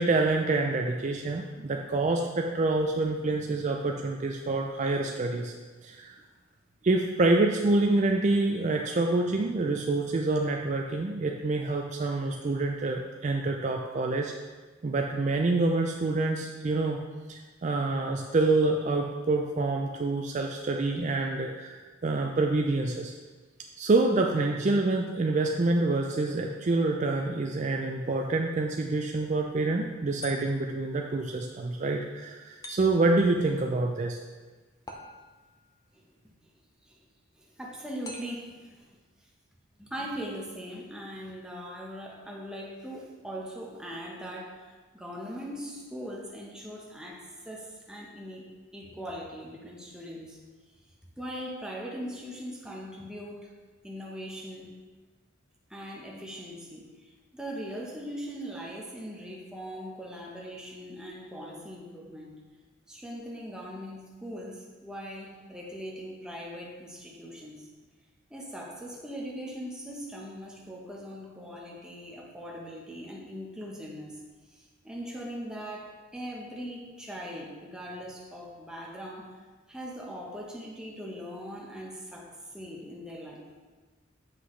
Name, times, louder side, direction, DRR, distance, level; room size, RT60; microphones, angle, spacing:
voice 1, 0.0-5.5 5.8-6.2 6.8-14.3 14.8-17.0 17.3-23.1 23.8-34.2, right 2 dB, 40° right, 2 dB, 0.4 m, -27 dB
sound 1, 30.2-30.9 32.6-33.3 34.9-35.6 38.0-38.7, left 2 dB, 20° left, 0.6 m, -45 dB
voice 2, 37.3-39.0 39.8-50.4 51.2-53.5 53.8-54.8 55.7-62.4 62.9-67.7 68.3-74.2 74.5-79.3 79.7-83.5, equal, 5° right, -3 dB, 1.0 m, -40 dB
7.9 x 5.8 x 3.2 m, 1.3 s
head